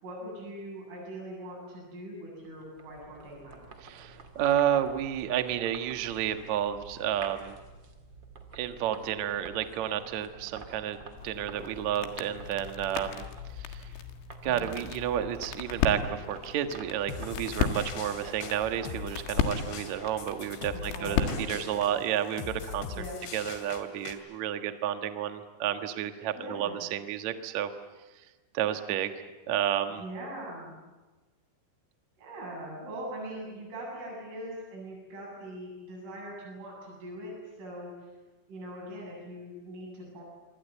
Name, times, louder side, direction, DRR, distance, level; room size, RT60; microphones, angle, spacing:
voice 1, 0.0-3.6 14.5-14.7 20.7-21.5 23.0-23.2 26.3-26.8 30.0-30.7 32.2-38.1 38.5-40.2, right 1 dB, 90° right, -3 dB, 10.5 m, -41 dB
sound 1, 2.4-21.5, right 4 dB, 35° right, 2.0 m, -49 dB
voice 2, 3.8-7.6 8.5-11.0 11.2-13.2 13.6-13.8 14.4-22.9 23.3-27.7 28.5-29.1 29.5-30.0, right 10 dB, 65° right, 7 dB, 1.8 m, -31 dB
sound 2, 11.2-22.0, left 7 dB, 85° left, 4.2 m, -35 dB
sound 3, 17.1-24.1, left 7 dB, 65° left, 4.2 m, -42 dB
26.0 x 24.5 x 8.2 m, 1.2 s
omnidirectional pair, 5.5 m